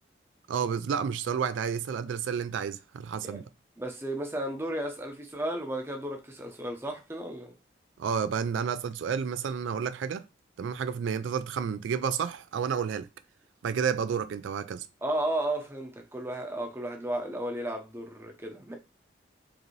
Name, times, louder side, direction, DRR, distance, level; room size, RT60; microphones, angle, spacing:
voice 1, 0.5-3.4 8.0-10.2 10.6-13.1 13.6-14.9, right 7 dB, 75° right, 0.3 m, -30 dB
voice 2, 3.8-7.5 15.0-18.7, right 1 dB, 10° right, 0.6 m, -34 dB
4.9 x 2.6 x 3.1 m
head